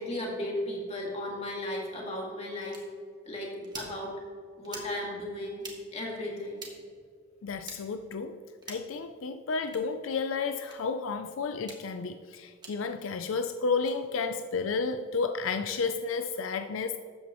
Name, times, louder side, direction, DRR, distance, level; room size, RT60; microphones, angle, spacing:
voice 1, 0.0-2.8 3.3-4.1 4.6-5.6 5.9-6.6, left 1 dB, 30° left, -2 dB, 2.1 m, -35 dB
sound 1, 2.7-2.8 3.6-3.9 4.6-4.9 5.6-5.8 6.6-6.7 7.6-7.8 8.6-8.9 9.6-9.8 10.6-10.8 11.6-11.8 12.6-12.7 13.7-14.0, right 3 dB, 20° right, 1.4 m, -44 dB
voice 2, 7.4-8.4 8.7-17.0, left 4 dB, 80° left, 8 dB, 0.4 m, -32 dB
13.0 x 8.4 x 3.0 m, 2.1 s
head